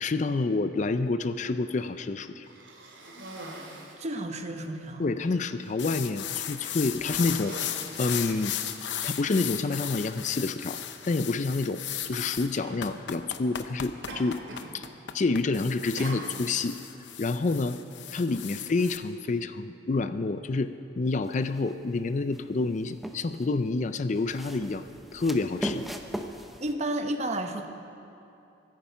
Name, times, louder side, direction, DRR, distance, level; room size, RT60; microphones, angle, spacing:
voice 1, 0.0-2.5 5.0-7.5 8.0-8.5 9.0-10.8 11.1-14.4 14.7-14.8 15.1-16.8 17.2-17.8 18.1-24.8 25.1-25.9, left 3 dB, 40° left, 11 dB, 0.4 m, -28 dB
Cough, 2.4-4.1 4.8-4.9 5.3-5.8 6.5-6.8 7.1-9.1 10.0-10.1 12.0-12.2 12.6-12.9 14.1-14.8 15.0-15.4 16.0-16.7, right 1 dB, 85° right, 2.5 m, -44 dB
voice 2, 4.0-5.1 26.6-27.7, right 1 dB, 35° right, 5 dB, 0.9 m, -31 dB
sound 1, 5.8-19.0, left 10 dB, 70° left, 0.8 m, -36 dB
sound 2, 21.3-21.7 22.3-23.5 24.1-26.7, equal, ahead, 0.6 m, -38 dB
24.0 x 9.9 x 5.7 m, 2.8 s
head